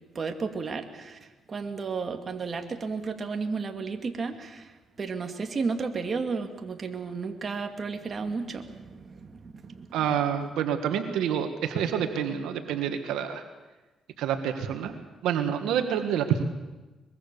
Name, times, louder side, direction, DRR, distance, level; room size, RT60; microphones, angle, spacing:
voice 1, 0.1-9.9, right 4 dB, 40° right, 5 dB, 2.3 m, -33 dB
voice 2, 9.9-13.4 14.2-14.9 15.2-16.4, right 8 dB, 90° right, 6 dB, 1.9 m, -27 dB
23.5 x 22.0 x 6.9 m, 1.2 s
cardioid pair, 90°, 0 cm